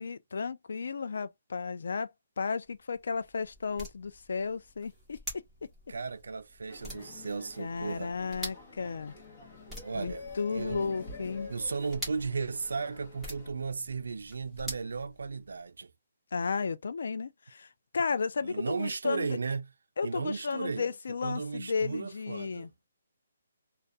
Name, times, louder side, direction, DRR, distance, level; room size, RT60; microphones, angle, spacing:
voice 1, 0.0-2.1 2.4-5.2 7.6-9.1 9.9-11.5 16.3-19.4 20.0-22.7, left 5 dB, 65° left, 0.3 m, -33 dB
sound 1, 2.5-15.7, equal, ahead, 0.9 m, -47 dB
voice 2, 5.9-8.1 9.8-10.9 11.5-15.9 18.4-19.7 20.0-20.9 21.2-22.7, right 4 dB, 85° right, 0.3 m, -35 dB
sound 2, 6.7-13.5, left 3 dB, 35° left, 0.8 m, -47 dB
2.3 x 2.2 x 2.5 m
hypercardioid pair, 175°, 0 cm